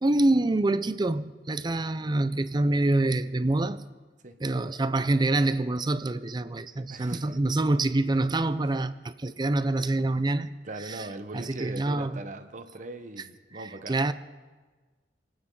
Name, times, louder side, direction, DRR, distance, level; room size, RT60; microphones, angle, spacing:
voice 1, 0.0-3.8 4.4-10.5 10.9-11.1 11.3-12.2 13.6-14.1, right 2 dB, 25° right, 13 dB, 0.5 m, -26 dB
voice 2, 6.7-7.3 10.6-14.0, right 2 dB, 45° right, 8 dB, 1.0 m, -40 dB
27.0 x 9.5 x 3.9 m, 1.4 s
head